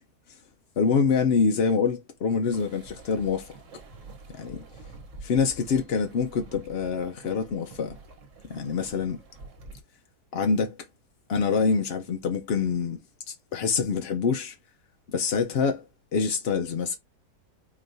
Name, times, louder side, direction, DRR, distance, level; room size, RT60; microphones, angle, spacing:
voice 1, 0.8-3.6 4.3-4.6 5.2-8.0 8.5-9.2 10.3-10.7 11.3-13.0 13.3-14.6 15.1-15.8 16.1-17.0, left 5 dB, 70° left, 0.5 m, -25 dB
sound 1, 2.5-9.8, right 3 dB, 55° right, 1.3 m, -47 dB
4.7 x 3.1 x 2.6 m
omnidirectional pair, 1.7 m